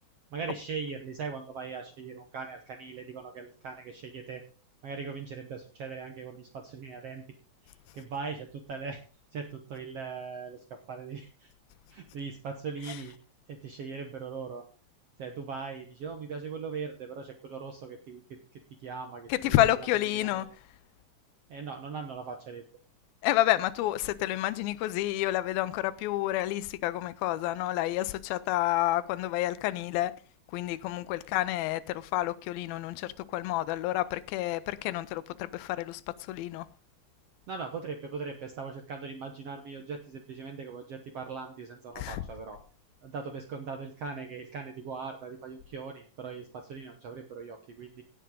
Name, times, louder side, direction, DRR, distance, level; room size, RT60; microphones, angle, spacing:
voice 1, 0.3-4.4 4.8-7.2 7.6-9.0 9.3-11.5 11.9-13.2 13.5-14.7 15.2-18.2 18.5-20.5 21.5-22.6 37.5-42.6 43.0-48.0, right 5 dB, 75° right, 1.4 m, -40 dB
voice 2, 19.3-20.5 23.2-30.1 30.5-36.0 36.3-36.7 42.0-42.2, left 15 dB, 80° left, 2.4 m, -29 dB
17.0 x 7.8 x 3.8 m
omnidirectional pair, 4.5 m